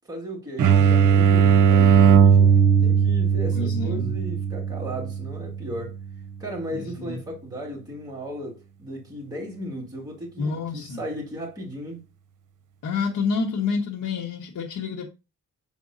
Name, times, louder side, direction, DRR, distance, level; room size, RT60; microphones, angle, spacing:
voice 1, 0.1-6.0 6.4-12.0, equal, 10° right, 1.8 m, -35 dB
sound 1, 0.6-6.1, right 7 dB, 70° right, 0.8 m, -18 dB
voice 2, 3.5-4.1 6.7-7.2 10.4-11.1 12.8-15.1, left 5 dB, 80° left, 1.4 m, -28 dB
7.5 x 5.6 x 2.6 m
wide cardioid pair, 145°, 32 cm